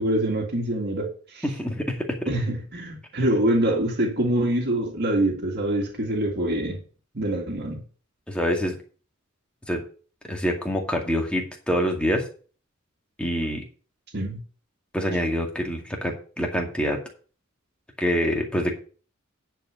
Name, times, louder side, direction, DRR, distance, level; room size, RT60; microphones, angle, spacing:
voice 1, 0.0-1.5 2.3-6.8 7.1-7.8 14.1-14.4, right 1 dB, 50° right, -1 dB, 2.0 m, -25 dB
voice 2, 1.4-2.0 8.3-8.7 9.7-9.8 10.3-12.2 13.2-13.6 14.9-17.0 18.0-18.8, equal, 5° left, 1 dB, 2.1 m, -26 dB
10.0 x 4.7 x 7.1 m, 0.40 s
head